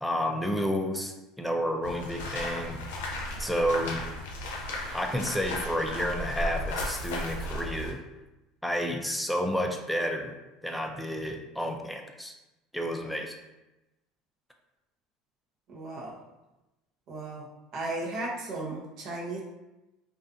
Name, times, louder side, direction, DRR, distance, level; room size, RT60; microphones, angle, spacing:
voice 1, 0.0-2.8 3.4-4.1 4.9-8.0 8.6-10.4 10.6-12.3 12.7-13.3, equal, ahead, 3 dB, 0.4 m, -30 dB
sound 1, 1.8-7.9, left 1 dB, 85° left, 0.6 m, -35 dB
voice 2, 15.7-16.1 17.1-17.5 17.7-19.4, right 2 dB, 55° right, -2 dB, 0.7 m, -35 dB
2.5 x 2.3 x 2.5 m, 0.99 s
supercardioid pair, 95°, 0 cm